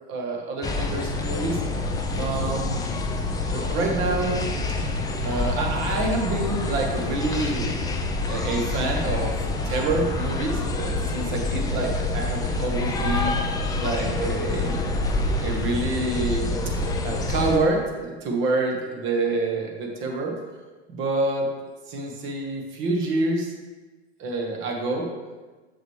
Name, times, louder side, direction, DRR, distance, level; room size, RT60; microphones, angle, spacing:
voice 1, 0.1-1.6 2.2-2.8 3.5-4.4 5.2-7.9 8.3-9.3 9.6-13.4 13.8-15.1 15.4-16.7 17.0-20.4 20.9-21.5 21.9-23.5 24.2-25.1, right 2 dB, 35° right, 1 dB, 1.6 m, -27 dB
sound 1, 0.6-17.6, left 2 dB, 10° left, 0.5 m, -27 dB
6.5 x 6.5 x 3.3 m, 1.2 s
hypercardioid pair, 110°, 33 cm